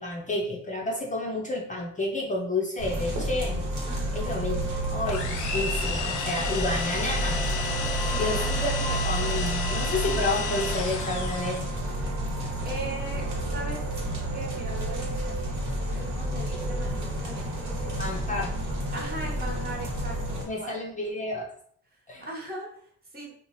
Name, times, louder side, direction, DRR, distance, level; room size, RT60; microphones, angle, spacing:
voice 1, 0.0-3.6 4.1-7.4 8.2-11.7 18.0-18.5 20.5-21.5 22.1-22.3, left 2 dB, 25° left, -1 dB, 0.5 m, -30 dB
sound 1, 2.8-20.4, right 1 dB, 75° right, 1.1 m, -30 dB
voice 2, 3.9-4.2 7.7-9.0 12.6-13.8 14.3-18.3 18.9-20.8 21.9-22.8 23.1-23.3, right 2 dB, 30° right, -2 dB, 1.0 m, -40 dB
sound 2, 5.0-11.8, left 5 dB, 80° left, 0.6 m, -32 dB
2.7 x 2.0 x 3.0 m, 0.62 s
cardioid pair, 90°, 30 cm